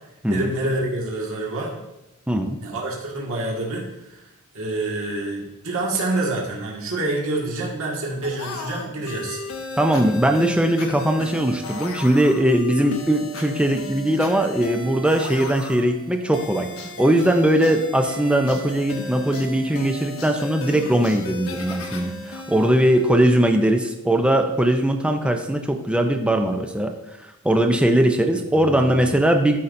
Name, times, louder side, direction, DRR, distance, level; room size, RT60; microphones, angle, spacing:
voice 1, 0.3-1.8 2.6-9.4 28.3-29.2, right 2 dB, 65° right, -3 dB, 1.8 m, -27 dB
voice 2, 2.3-2.6 9.8-16.7 17.0-26.9 27.4-29.6, right 1 dB, 5° right, 4 dB, 0.5 m, -20 dB
sound 1, 8.2-23.7, left 1 dB, 65° left, 1.1 m, -35 dB
12.5 x 5.5 x 2.6 m, 0.93 s
head